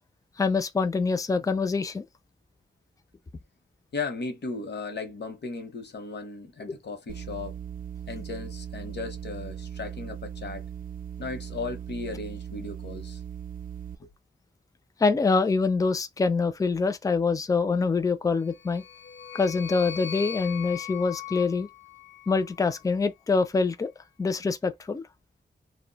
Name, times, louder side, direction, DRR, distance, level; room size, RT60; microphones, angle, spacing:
voice 1, 0.4-2.0 6.7-6.8 15.0-18.8 19.3-21.7 22.3-23.9 24.2-25.0, left 4 dB, 20° left, 0.3 m, -25 dB
voice 2, 3.9-7.6 8.1-10.7 11.2-13.2 14.0-14.1, left 3 dB, 65° left, 0.8 m, -36 dB
sound 1, 7.1-13.9, right 9 dB, 50° right, 0.4 m, -39 dB
sound 2, 18.5-22.9, left 9 dB, 85° left, 0.4 m, -40 dB
2.4 x 2.1 x 3.9 m
wide cardioid pair, 150°, 19 cm